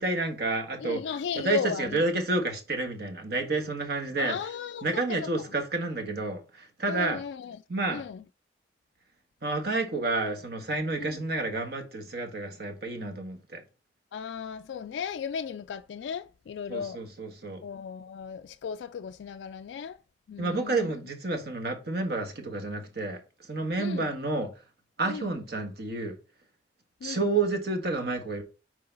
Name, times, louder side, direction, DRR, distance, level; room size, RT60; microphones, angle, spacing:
voice 1, 0.0-4.4 4.8-7.2 7.7-8.0 9.4-13.6 16.7-17.6 20.4-23.2 23.5-24.5 25.0-26.2 27.0-28.4, right 3 dB, 60° right, 1.5 m, -30 dB
voice 2, 0.8-2.0 4.2-5.5 6.9-7.6 7.9-8.2 11.0-11.1 14.1-17.0 17.6-20.0 20.3-20.9 23.8-24.1 25.1-25.3 27.0-27.3, left 7 dB, 80° left, 0.3 m, -36 dB
6.7 x 4.6 x 3.9 m
head